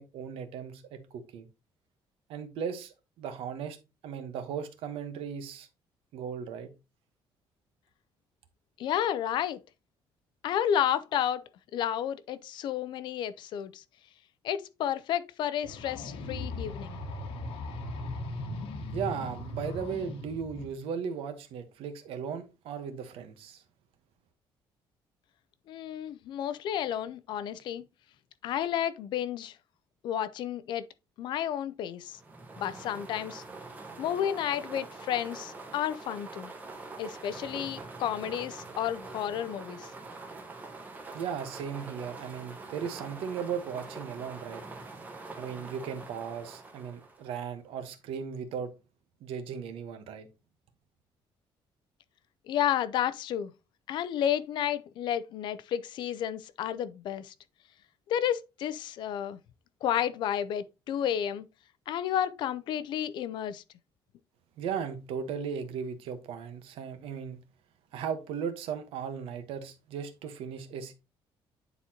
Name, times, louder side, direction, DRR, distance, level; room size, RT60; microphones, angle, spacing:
voice 1, 0.0-1.5 2.3-3.8 4.0-5.7 6.1-6.7 18.9-23.6 41.1-44.6 45.3-48.7 49.2-50.3 64.6-67.4 67.9-70.9, right 7 dB, 85° right, 1.2 m, -37 dB
voice 2, 8.8-9.6 10.4-13.8 14.4-17.0 25.7-27.8 28.4-29.6 30.0-30.8 31.2-32.2 32.6-33.4 34.0-36.5 37.0-39.9 52.5-53.5 53.9-57.3 58.1-59.4 59.8-61.4 61.9-63.6, left 10 dB, 55° left, 0.5 m, -31 dB
sound 1, 15.6-20.7, left 2 dB, 85° left, 1.2 m, -38 dB
sound 2, 32.1-47.5, right 3 dB, 20° right, 1.0 m, -44 dB
9.6 x 4.1 x 2.8 m
cardioid pair, 180°, 9 cm